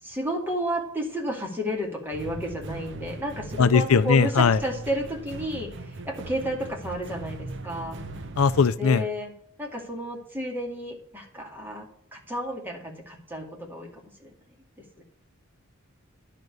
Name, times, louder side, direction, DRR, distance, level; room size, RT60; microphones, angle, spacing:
voice 1, 0.0-8.0 8.8-9.3 9.6-14.3 15.0-15.1, equal, 10° right, 0 dB, 2.3 m, -32 dB
sound 1, 2.1-8.7, right 2 dB, 60° right, 0.9 m, -39 dB
voice 2, 3.6-4.6 8.4-9.1, left 5 dB, 75° left, 15 dB, 0.5 m, -19 dB
11.0 x 5.1 x 8.0 m, 0.65 s
head